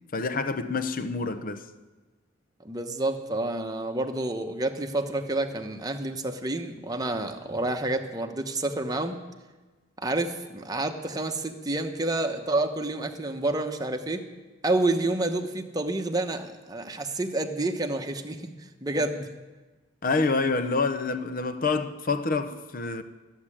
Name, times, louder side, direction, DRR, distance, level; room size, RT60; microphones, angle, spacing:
voice 1, 0.1-1.7 20.0-23.0, left 3 dB, 45° left, 0.7 m, -27 dB
voice 2, 2.6-9.2 10.0-14.2 14.6-18.4 18.8-19.3, right 2 dB, 20° right, 1.0 m, -29 dB
14.0 x 7.4 x 9.9 m
head